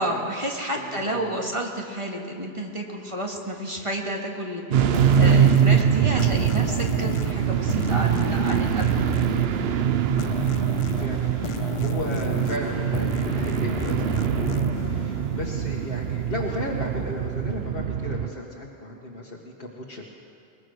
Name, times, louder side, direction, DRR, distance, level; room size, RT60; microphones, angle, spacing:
voice 1, 0.0-4.8 5.2-9.0, right 1 dB, 30° right, 0 dB, 2.2 m, -30 dB
voice 2, 0.7-1.5 4.8-5.1 11.0-20.1, left 1 dB, 60° left, -2 dB, 1.8 m, -35 dB
sound 1, 4.7-18.3, right 9 dB, 70° right, 0.9 m, -23 dB
sound 2, 4.9-16.1, left 6 dB, 40° left, 0.4 m, -34 dB
22.0 x 20.5 x 6.4 m, 2.5 s
omnidirectional pair, 1.1 m